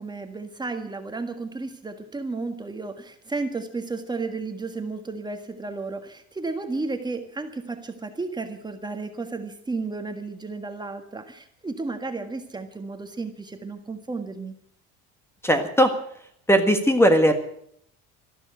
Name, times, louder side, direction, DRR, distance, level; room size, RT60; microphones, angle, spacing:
voice 1, 0.0-14.5, right 3 dB, 15° right, 6 dB, 1.6 m, -33 dB
voice 2, 15.4-16.0 16.5-17.3, equal, 10° left, 8 dB, 1.6 m, -18 dB
13.5 x 12.0 x 7.8 m, 0.67 s
cardioid pair, 120°, 29 cm